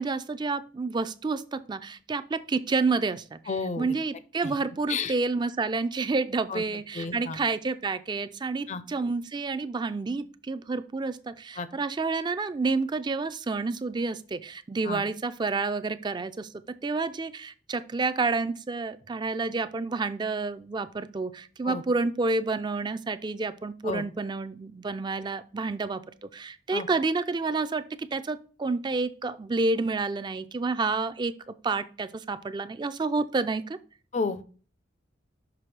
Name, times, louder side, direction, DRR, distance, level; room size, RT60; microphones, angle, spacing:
voice 1, 0.0-3.4 3.8-16.5 16.8-33.8, right 3 dB, 25° right, 12 dB, 0.3 m, -29 dB
voice 2, 3.5-4.0 4.4-4.5 4.9-5.1 6.5-6.6 6.9-7.4 8.7-8.8 11.6-11.7 14.8-15.0 21.6-21.8 23.8-24.0 26.7-26.9 34.1-34.4, left 4 dB, 40° left, 12 dB, 0.5 m, -31 dB
6.0 x 5.6 x 3.3 m, 0.38 s
head